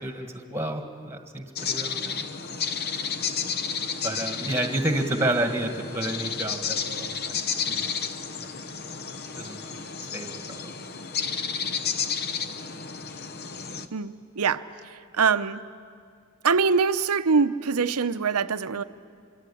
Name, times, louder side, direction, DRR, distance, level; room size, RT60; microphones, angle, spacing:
voice 1, 0.0-2.2 4.0-7.4 7.7-8.0 9.4-9.7 10.1-10.7, right 1 dB, 10° right, 5 dB, 1.8 m, -30 dB
sound 1, 1.5-13.9, left 6 dB, 45° left, 1.0 m, -32 dB
voice 2, 13.9-15.6 16.4-18.8, right 5 dB, 85° right, 12 dB, 0.8 m, -24 dB
26.0 x 24.0 x 8.5 m, 2.3 s
head